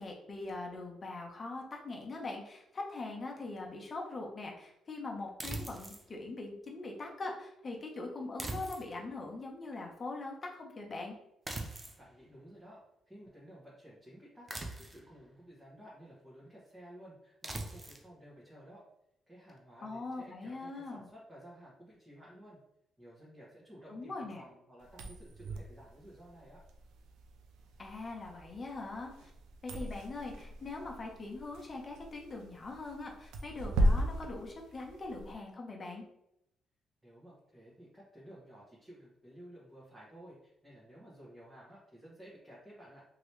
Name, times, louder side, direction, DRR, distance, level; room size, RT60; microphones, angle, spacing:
voice 1, 0.0-11.2 19.8-21.0 23.9-24.4 27.8-29.3 29.6-36.0, left 3 dB, 35° left, 0 dB, 0.9 m, -42 dB
sound 1, 5.4-6.1 8.4-9.1 11.5-12.0 14.5-15.1 17.4-18.1, right 2 dB, 25° right, 0.6 m, -41 dB
voice 2, 12.0-18.8 19.3-22.6 23.0-26.6 37.0-43.0, equal, 10° right, -8 dB, 1.2 m, -54 dB
sound 2, 24.8-35.3, equal, 90° right, 0.4 m, -36 dB
3.0 x 2.8 x 3.2 m, 0.82 s
cardioid pair, 90°, 0 cm